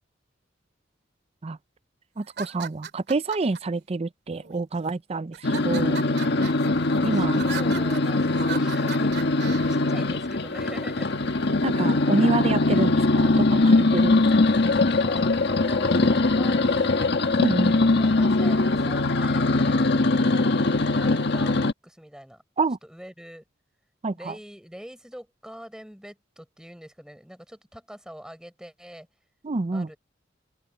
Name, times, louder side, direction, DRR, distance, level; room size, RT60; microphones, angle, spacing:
voice 1, 2.2-6.1 7.0-7.4 11.6-14.2 17.4-17.8 22.6-22.8 24.0-24.4 29.4-29.9, right 3 dB, 35° right, 0.5 m, -27 dB
sound 1, 2.2-3.6 4.3-4.9 5.3-9.7, right 6 dB, 60° right, 2.2 m, -38 dB
sound 2, 5.4-21.7, left 2 dB, 60° left, 1.5 m, -22 dB
voice 2, 7.1-9.3 9.7-11.1 15.0-17.1 17.8-20.4 20.8-22.4 22.8-23.4 24.1-29.1 29.7-30.0, equal, 5° right, 6.8 m, -43 dB
open air
head